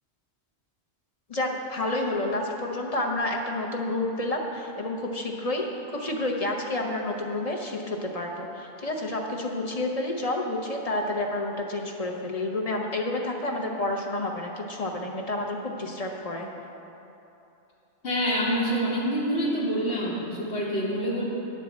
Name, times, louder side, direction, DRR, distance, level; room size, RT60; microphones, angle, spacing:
voice 1, 1.3-16.5, left 2 dB, 40° left, 0 dB, 0.8 m, -29 dB
voice 2, 18.0-21.2, equal, 80° left, -8 dB, 1.7 m, -26 dB
9.7 x 4.6 x 7.2 m, 2.9 s
omnidirectional pair, 1.1 m